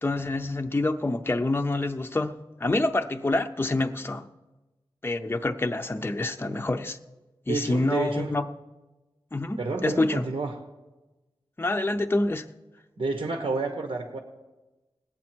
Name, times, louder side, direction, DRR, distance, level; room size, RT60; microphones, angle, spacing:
voice 1, 0.0-4.3 5.0-7.0 7.5-8.4 9.3-10.3 11.6-12.5, left 2 dB, 25° left, 6 dB, 0.5 m, -27 dB
voice 2, 7.5-8.3 9.6-10.6 13.0-14.2, right 3 dB, 90° right, 3 dB, 1.2 m, -29 dB
20.0 x 8.4 x 4.5 m, 1.1 s
wide cardioid pair, 60°, 9 cm